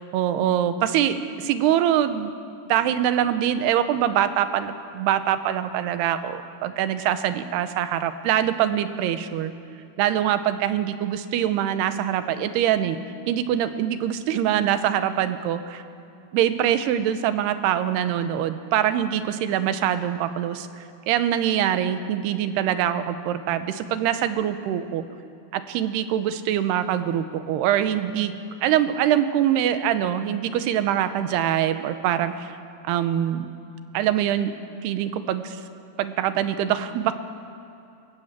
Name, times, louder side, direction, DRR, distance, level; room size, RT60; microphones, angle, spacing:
voice 1, 0.0-2.3 2.7-9.5 10.0-13.0 13.3-15.8 16.3-25.0 25.5-28.3 28.6-32.5 32.9-33.5 33.9-34.5 34.8-35.6 36.0-37.1, right 10 dB, 90° right, 11 dB, 3.0 m, -24 dB
27.0 x 16.5 x 7.4 m, 2.6 s
omnidirectional pair, 4.6 m